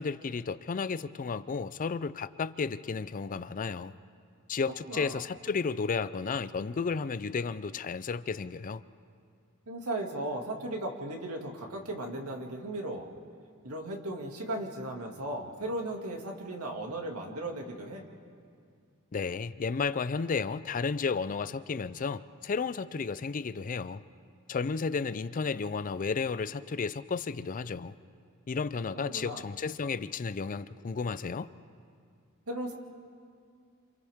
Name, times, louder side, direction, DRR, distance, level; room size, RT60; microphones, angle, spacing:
voice 1, 0.0-3.9 4.5-8.8 19.1-24.0 24.5-27.9 28.5-31.5, left 5 dB, 35° left, 0.4 m, -33 dB
voice 2, 4.9-5.2 9.7-13.1 13.6-18.0 28.9-29.4 32.5-32.7, right 1 dB, 85° right, 2.3 m, -36 dB
28.0 x 27.5 x 3.6 m
head